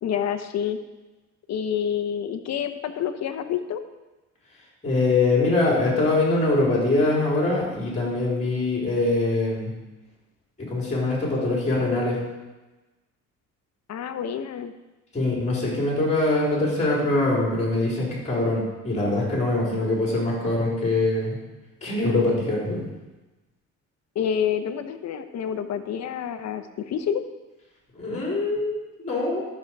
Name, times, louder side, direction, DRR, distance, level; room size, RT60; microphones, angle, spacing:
voice 1, 0.0-0.8 1.5-3.8 13.9-14.7 24.1-27.2, left 8 dB, 55° left, 9 dB, 1.0 m, -28 dB
voice 2, 4.8-9.7 10.6-12.2 15.1-21.4 21.8-22.9 28.0-29.4, left 2 dB, 20° left, -3 dB, 4.1 m, -23 dB
13.5 x 6.4 x 4.7 m, 1.1 s
cardioid pair, 105°, 31 cm